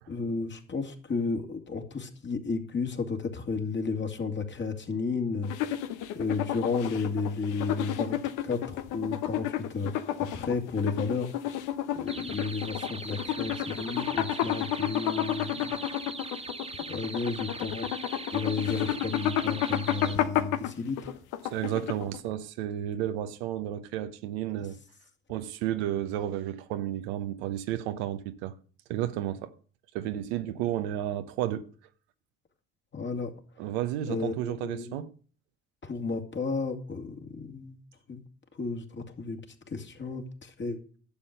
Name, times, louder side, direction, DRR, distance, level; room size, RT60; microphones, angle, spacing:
voice 1, 0.1-5.8 6.1-11.6 11.9-16.0 16.9-17.9 18.3-21.2 24.6-24.7 32.9-33.3 34.1-35.0 35.8-37.8 38.1-38.2 38.5-39.4 39.7-40.8, left 4 dB, 35° left, 2.5 m, -33 dB
sound 1, 5.4-22.3, left 11 dB, 70° left, 1.1 m, -31 dB
sound 2, 12.1-20.2, right 4 dB, 20° right, 1.6 m, -41 dB
voice 2, 21.5-24.8 25.3-28.5 28.9-29.5 29.9-31.6 33.6-35.1, right 12 dB, 75° right, 1.0 m, -32 dB
12.0 x 7.2 x 6.6 m
hypercardioid pair, 60°, 32 cm